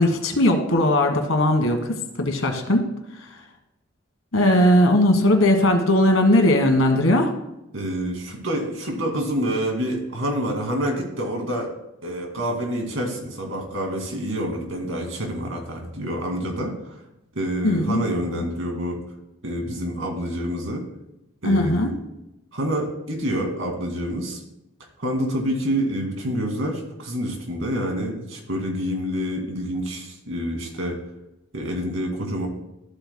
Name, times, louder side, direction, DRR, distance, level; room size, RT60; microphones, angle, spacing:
voice 1, 0.0-1.8 2.2-2.9 3.1-3.3 4.3-7.3 17.6-18.0 18.3-18.4 21.4-21.9, left 1 dB, 85° left, 5 dB, 1.4 m, -18 dB
voice 2, 7.7-11.7 12.0-16.7 17.3-19.0 19.4-20.8 21.4-22.0 22.5-24.4 25.0-31.0 31.5-32.5, equal, 80° right, 2 dB, 2.3 m, -27 dB
13.5 x 8.3 x 2.2 m, 0.89 s
head